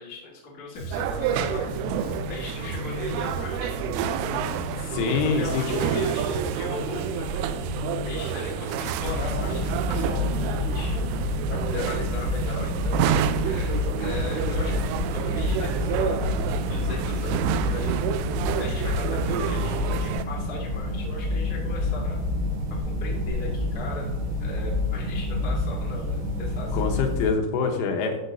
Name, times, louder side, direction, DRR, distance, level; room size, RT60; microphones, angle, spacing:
voice 1, 0.0-1.8 2.3-4.5 5.0-7.6 8.0-18.0 18.2-22.2 22.8-24.1 24.4-26.9, left 2 dB, 65° left, -4 dB, 0.5 m, -38 dB
Bass guitar, 0.7-10.6, left 2 dB, 50° left, 2.6 m, -36 dB
sound 1, 0.9-20.3, right 9 dB, 90° right, 3.1 m, -29 dB
voice 2, 4.9-5.8 26.7-28.2, left 5 dB, 85° left, 3 dB, 3.6 m, -25 dB
sound 2, 9.0-27.3, left 2 dB, 65° right, 3.9 m, -28 dB
12.0 x 7.2 x 2.7 m, 1.1 s
omnidirectional pair, 5.6 m